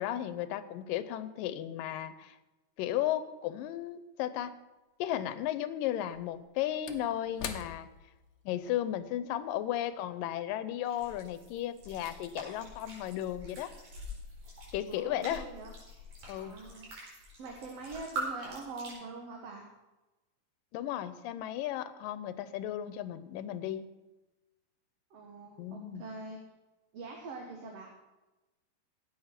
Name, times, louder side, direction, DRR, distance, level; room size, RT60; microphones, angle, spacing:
voice 1, 0.0-2.4 2.8-4.5 5.0-7.9 8.5-13.7 14.7-15.5 16.3-16.6 20.7-23.9 25.6-26.0, left 12 dB, 85° left, 13 dB, 2.4 m, -35 dB
Slam / Wood, 6.0-10.7 11.0-11.2, left 8 dB, 70° left, 1.8 m, -46 dB
sound 1, 10.9-18.9, right 1 dB, 85° right, 6.1 m, -44 dB
voice 2, 14.9-15.7 16.3-16.9 17.4-19.7 25.1-26.4 26.9-27.9, right 3 dB, 55° right, 1 dB, 2.1 m, -44 dB
14.5 x 8.7 x 5.9 m, 1.1 s
omnidirectional pair, 3.9 m